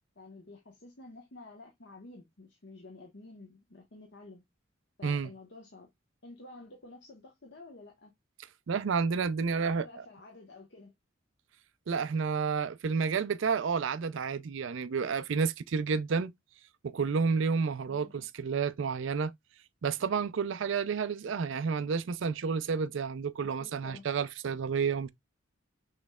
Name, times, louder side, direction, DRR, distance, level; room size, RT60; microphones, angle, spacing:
voice 1, 0.2-4.4 5.0-5.9 6.2-8.1 9.6-10.9 17.9-18.1 23.4-24.1, left 2 dB, 60° left, 1.1 m, -51 dB
voice 2, 8.7-9.9 11.9-16.3 16.8-19.3 19.8-25.1, right 5 dB, 70° right, 0.4 m, -30 dB
6.2 x 3.1 x 2.3 m
head